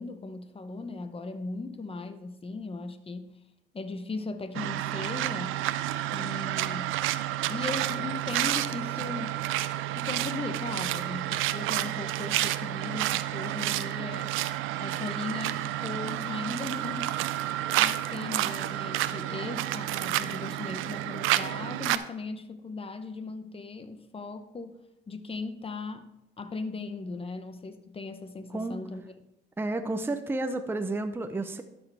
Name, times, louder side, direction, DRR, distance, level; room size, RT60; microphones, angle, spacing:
voice 1, 0.0-3.3 3.7-5.6 6.1-7.0 7.5-9.5 9.9-14.3 14.8-17.1 17.8-24.8 25.1-26.1 26.4-29.1, left 3 dB, 30° left, 0.8 m, -38 dB
sound 1, 4.5-22.0, right 14 dB, 90° right, 0.4 m, -30 dB
voice 2, 29.6-31.6, right 2 dB, 10° right, 0.6 m, -31 dB
12.0 x 6.2 x 3.4 m
cardioid pair, 90°, 20 cm